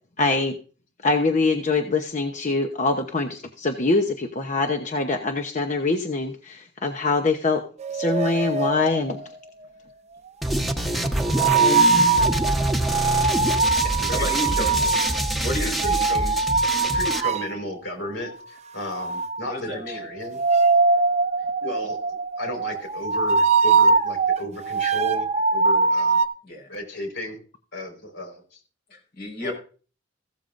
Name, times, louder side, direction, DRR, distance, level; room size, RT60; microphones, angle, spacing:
voice 1, 0.2-0.6 1.0-7.6 7.9-9.2 11.6-12.1, left 3 dB, 40° left, 4 dB, 0.9 m, -24 dB
sound 1, 7.8-9.2 11.2-17.6 18.9-26.3, right 4 dB, 35° right, 0.6 m, -22 dB
sound 2, 10.4-17.2, right 1 dB, ahead, 1.1 m, -25 dB
voice 2, 10.9-11.2 14.1-14.8 15.4-15.9 19.4-20.0 26.4-26.7 28.9-29.5, left 1 dB, 60° left, 2 dB, 4.8 m, -31 dB
voice 3, 13.8-14.9 15.6-16.4 16.8-20.4 21.6-25.3 25.5-26.2 26.7-27.4 27.7-28.4 29.4-29.5, left 1 dB, 85° left, 3 dB, 4.5 m, -34 dB
15.5 x 13.0 x 2.6 m, 0.39 s
head